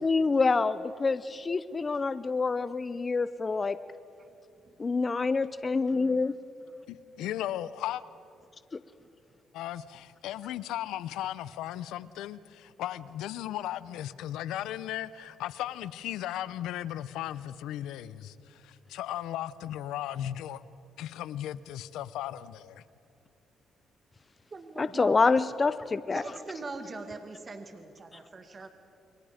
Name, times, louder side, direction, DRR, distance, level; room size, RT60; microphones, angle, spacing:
voice 1, 0.0-3.8 4.8-6.3 8.7-8.8 24.8-26.2, left 4 dB, 30° left, 14 dB, 0.6 m, -27 dB
voice 2, 6.9-8.0 9.5-20.6 21.0-22.8, left 12 dB, 90° left, 16 dB, 0.7 m, -36 dB
voice 3, 24.5-25.4 26.1-28.7, right 3 dB, 35° right, 6 dB, 2.0 m, -42 dB
29.0 x 23.0 x 5.1 m, 2.6 s
cardioid pair, 90°, 0 cm